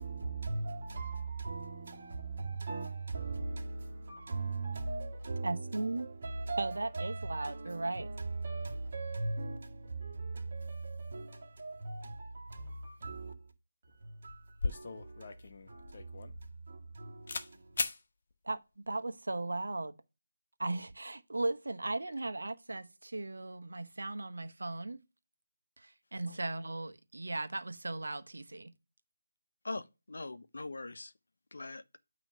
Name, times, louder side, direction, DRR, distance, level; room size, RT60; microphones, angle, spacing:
voice 1, 0.0-13.3 14.0-15.3 15.7-16.3 16.7-17.7, right 3 dB, 45° right, 1.7 m, -39 dB
voice 2, 5.4-6.1 6.6-8.1 18.4-19.9 20.6-25.0 25.8-28.7, right 2 dB, 75° right, 1.0 m, -37 dB
sound 1, 13.9-14.0 14.3-17.0 17.3-17.5 17.8-18.0, left 3 dB, 50° left, 1.0 m, -37 dB
voice 3, 29.6-31.1 31.5-32.0, left 2 dB, 70° left, 0.8 m, -42 dB
9.0 x 3.1 x 6.5 m
figure-of-eight pair, 160°, 0 cm